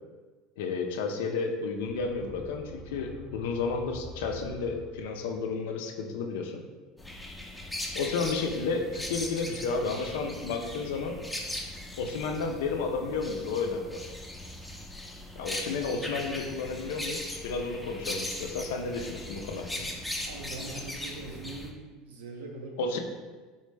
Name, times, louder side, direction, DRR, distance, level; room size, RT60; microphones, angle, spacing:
voice 1, 0.6-6.6 7.9-11.2 12.0-14.1 15.4-19.9 22.8-23.0, left 4 dB, 85° left, 3 dB, 0.4 m, -32 dB
sound 1, 1.9-5.5, left 1 dB, 30° left, 0.8 m, -45 dB
sound 2, 7.0-21.7, left 1 dB, 5° left, 0.5 m, -39 dB
voice 2, 20.2-23.0, right 2 dB, 90° right, 1 dB, 0.6 m, -42 dB
3.8 x 2.1 x 3.2 m, 1.4 s
supercardioid pair, 100°, 0 cm